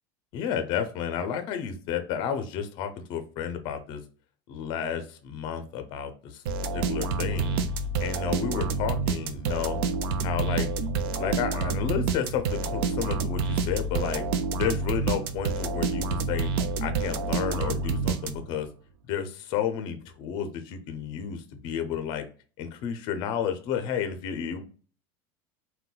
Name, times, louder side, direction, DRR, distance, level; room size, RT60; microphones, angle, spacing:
voice 1, 0.3-4.0 4.5-6.4 6.7-7.6 8.0-9.8 10.2-10.7 11.2-14.2 14.5-16.5 16.8-18.7 19.1-22.2 22.6-24.6, left 8 dB, 40° left, 9 dB, 0.5 m, -31 dB
sound 1, 6.5-18.7, right 4 dB, 80° right, 0.4 m, -28 dB
3.7 x 2.2 x 2.3 m, 0.40 s
cardioid pair, 170°, 12 cm